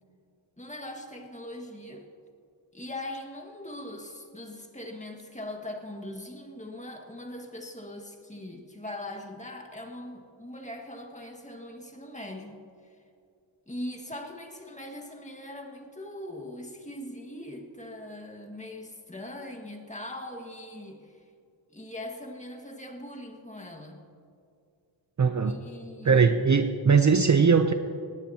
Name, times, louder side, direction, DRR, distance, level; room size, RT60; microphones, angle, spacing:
voice 1, 0.6-2.1 2.7-12.6 13.7-21.1 21.7-24.0 25.4-26.5, left 1 dB, 15° left, 2 dB, 1.8 m, -41 dB
voice 2, 25.2-25.6 26.0-27.7, right 5 dB, 40° right, 7 dB, 0.6 m, -20 dB
19.0 x 17.5 x 2.9 m, 2.5 s
wide cardioid pair, 95°, 47 cm